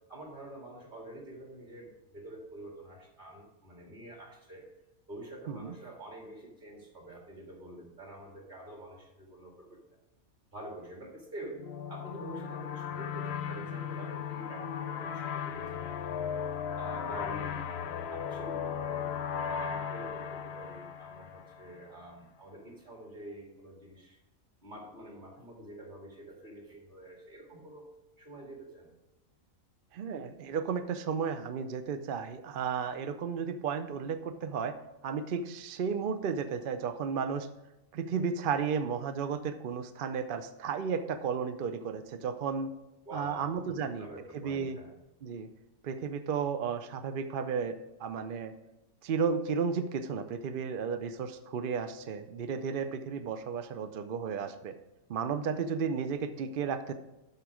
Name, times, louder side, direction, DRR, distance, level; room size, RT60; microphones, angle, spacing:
voice 1, 0.1-4.7 5.1-9.8 10.5-16.3 16.8-17.6 18.1-19.1 19.4-24.2 24.6-28.9 43.1-44.9, right 1 dB, 35° right, 0 dB, 2.2 m, -47 dB
sound 1, 11.6-21.9, left 7 dB, 60° left, 0.8 m, -36 dB
voice 2, 29.9-34.8 35.0-37.5 37.9-42.7 43.1-44.1 44.3-44.8 45.2-45.5 45.8-48.5 49.0-54.7 55.1-56.9, right 6 dB, 55° right, 9 dB, 0.6 m, -33 dB
12.0 x 4.5 x 4.9 m, 0.98 s
omnidirectional pair, 1.4 m